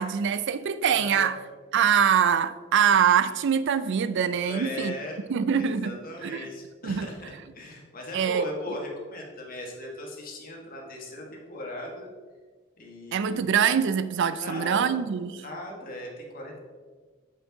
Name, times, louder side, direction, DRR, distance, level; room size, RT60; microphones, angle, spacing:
voice 1, 0.0-1.4 1.7-4.9 5.3-5.9 6.2-6.5 6.8-7.1 8.1-8.4 13.1-15.3, right 7 dB, 60° right, 0.4 m, -24 dB
voice 2, 0.9-1.3 4.4-5.2 5.5-12.1 12.8-13.4 14.4-15.0 15.4-16.6, left 1 dB, 45° left, 1.4 m, -38 dB
7.7 x 4.6 x 3.9 m
head